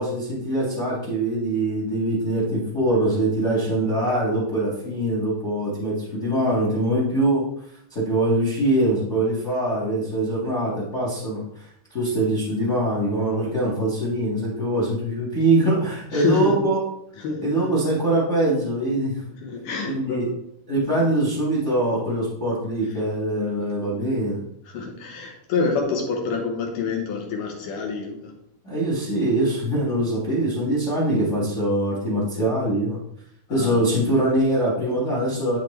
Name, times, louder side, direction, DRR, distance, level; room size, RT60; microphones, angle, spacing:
voice 1, 0.0-16.8 17.4-19.2 19.8-20.3 20.7-24.4 28.6-33.0 33.5-35.6, right 1 dB, 35° left, -4 dB, 1.2 m, -23 dB
voice 2, 16.1-16.6 17.2-17.7 19.4-20.4 23.6-23.7 24.7-28.4 33.5-33.8, left 4 dB, 70° left, 1 dB, 2.1 m, -27 dB
11.5 x 4.1 x 3.3 m, 0.70 s
omnidirectional pair, 4.8 m